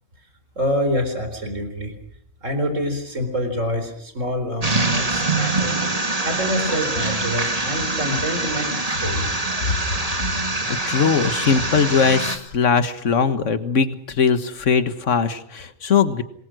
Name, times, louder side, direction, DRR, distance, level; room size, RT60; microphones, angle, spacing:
voice 1, 0.6-1.9 2.4-5.8 6.2-9.3, equal, 70° right, 7 dB, 4.6 m, -26 dB
sound 1, 4.6-12.4, right 2 dB, 30° right, 2.5 m, -24 dB
voice 2, 10.7-16.2, left 6 dB, 70° left, 10 dB, 1.8 m, -20 dB
26.5 x 21.0 x 6.3 m, 0.68 s
omnidirectional pair, 1.3 m